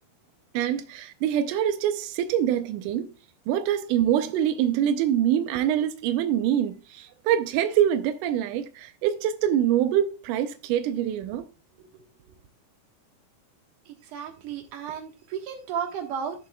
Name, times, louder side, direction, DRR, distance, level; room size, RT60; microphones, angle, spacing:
voice 1, 0.5-3.1 3.5-11.5, right 10 dB, 85° right, 1.8 m, -25 dB
voice 2, 14.1-16.3, right 7 dB, 60° right, 2.6 m, -33 dB
13.5 x 7.0 x 2.3 m
omnidirectional pair, 4.6 m